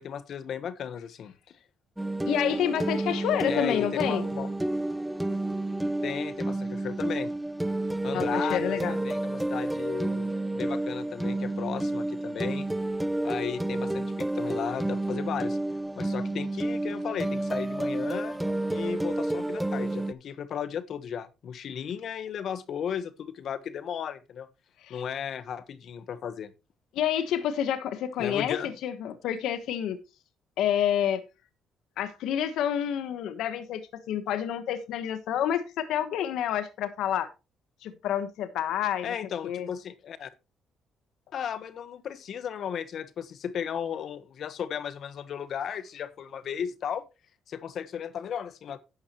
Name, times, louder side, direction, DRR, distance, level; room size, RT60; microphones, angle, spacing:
voice 1, 0.0-1.6 3.5-4.5 6.0-7.3 8.0-12.7 13.2-15.6 16.0-18.4 18.7-24.5 24.9-26.5 28.2-28.8 39.0-40.3 41.3-47.0 47.5-48.8, left 8 dB, 55° left, 1.1 m, -35 dB
sound 1, 2.0-20.1, right 1 dB, 5° right, 0.5 m, -30 dB
voice 2, 2.3-4.2 8.1-9.0 24.8-25.0 26.9-30.0 30.6-31.2 32.0-37.3 37.8-39.1 39.4-39.7, left 10 dB, 85° left, 1.1 m, -29 dB
11.0 x 9.6 x 3.0 m
cardioid pair, 145°, 0 cm